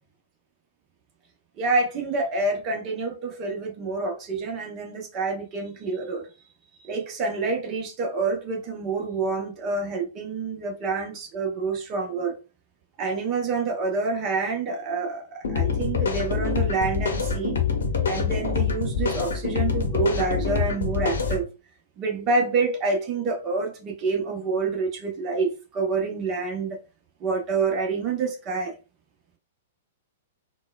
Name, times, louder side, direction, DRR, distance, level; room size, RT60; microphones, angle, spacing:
voice 1, 1.6-6.3 6.8-12.4 13.0-17.6 18.0-21.5 22.0-26.8 27.2-28.8, right 4 dB, 30° right, 0.8 m, -27 dB
sound 1, 15.4-21.4, left 6 dB, 65° left, 0.8 m, -25 dB
4.0 x 2.2 x 2.2 m
figure-of-eight pair, 105°, 0 cm